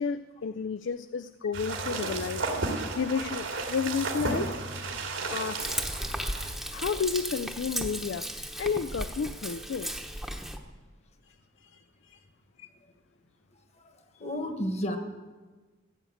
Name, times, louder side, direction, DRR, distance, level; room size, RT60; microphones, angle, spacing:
voice 1, 0.0-2.5 2.9-4.5 5.2-5.7 6.7-9.9 11.6-12.2, left 6 dB, 65° left, 14 dB, 0.4 m, -32 dB
sound 1, 1.5-6.5, right 3 dB, 80° right, 2.5 m, -33 dB
Frying (food), 5.6-10.6, right 1 dB, ahead, 0.9 m, -35 dB
voice 2, 14.2-15.0, equal, 35° left, 7 dB, 1.4 m, -31 dB
15.0 x 9.1 x 7.8 m, 1.3 s
head